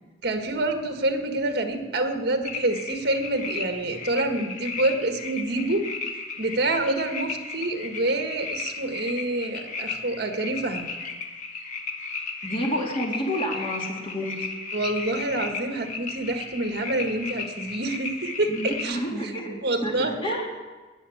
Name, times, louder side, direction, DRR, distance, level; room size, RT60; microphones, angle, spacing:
voice 1, 0.2-5.8 6.4-10.9 14.7-19.3 19.6-20.1, right 2 dB, 60° right, 5 dB, 1.5 m, -27 dB
sound 1, 2.4-18.9, left 4 dB, 45° left, 1.3 m, -35 dB
voice 2, 12.4-14.5 18.5-20.5, equal, 30° left, -1 dB, 2.2 m, -29 dB
19.5 x 7.1 x 7.2 m, 1.3 s
head